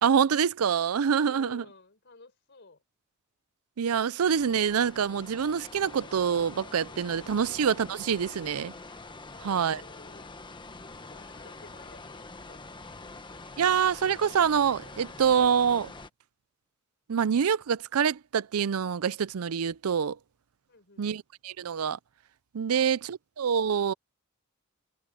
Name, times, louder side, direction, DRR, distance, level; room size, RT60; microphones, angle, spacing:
voice 1, 0.0-1.6 3.8-8.7 9.4-9.8 13.6-15.9 17.1-20.2 21.0-22.0 22.5-23.9, right 7 dB, 90° right, 0.5 m, -26 dB
voice 2, 1.3-2.8 7.2-7.6 9.3-10.5 10.9-13.1 20.7-21.1 22.7-23.0, left 3 dB, 55° left, 4.5 m, -54 dB
sound 1, 4.3-16.1, left 3 dB, 20° left, 1.2 m, -45 dB
head